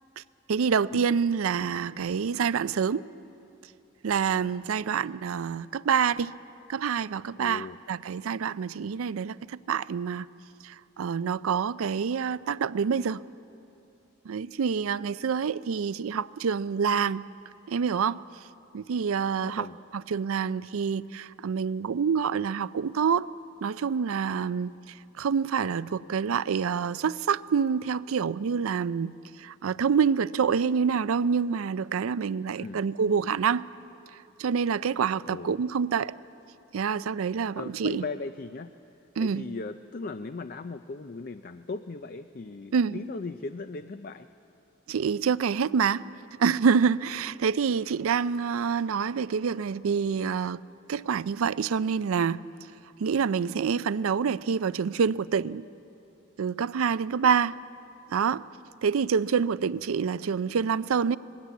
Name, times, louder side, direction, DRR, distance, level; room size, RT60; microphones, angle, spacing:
voice 1, 0.5-3.0 4.0-6.3 6.7-10.3 10.6-13.2 14.3-17.3 17.7-18.2 18.7-19.7 19.9-23.3 23.6-24.7 25.2-29.1 29.4-33.6 34.4-36.1 36.7-38.0 39.2-39.4 42.7-43.0 44.9-46.0 46.4-50.6 50.9-52.4 53.0-55.6 56.4-57.6 58.1-58.4 58.8-61.2, right 6 dB, 85° right, 0.4 m, -27 dB
voice 2, 7.4-7.8 19.5-19.8 32.6-32.9 35.3-35.5 37.5-38.7 39.2-44.3, left 3 dB, 45° left, 0.4 m, -38 dB
20.0 x 17.0 x 8.3 m
head